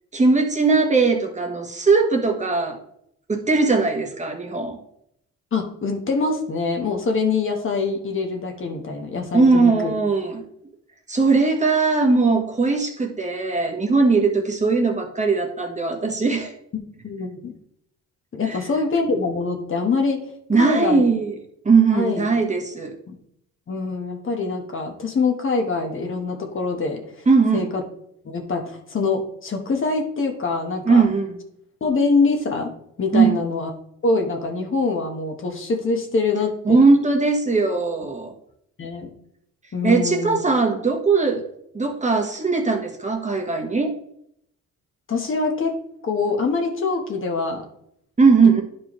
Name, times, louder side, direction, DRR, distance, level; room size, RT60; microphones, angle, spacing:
voice 1, 0.1-2.8 3.3-4.8 9.3-10.4 11.1-16.5 18.5-18.6 20.5-21.4 21.6-22.9 27.3-27.7 30.8-31.3 33.1-33.4 36.6-38.3 39.8-41.5 41.7-44.0 48.2-48.6, right 4 dB, 25° right, 2 dB, 1.3 m, -19 dB
voice 2, 5.5-9.9 17.0-17.5 18.3-20.2 20.6-21.0 21.9-22.2 23.1-23.2 23.7-27.0 27.5-27.8 28.2-31.1 31.8-32.7 33.0-33.7 34.0-36.8 38.8-39.1 39.7-40.4 45.1-45.7 46.0-47.6 48.4-48.5, left 4 dB, 40° left, 3 dB, 1.3 m, -24 dB
10.5 x 4.6 x 3.1 m, 0.73 s
cardioid pair, 90°, 30 cm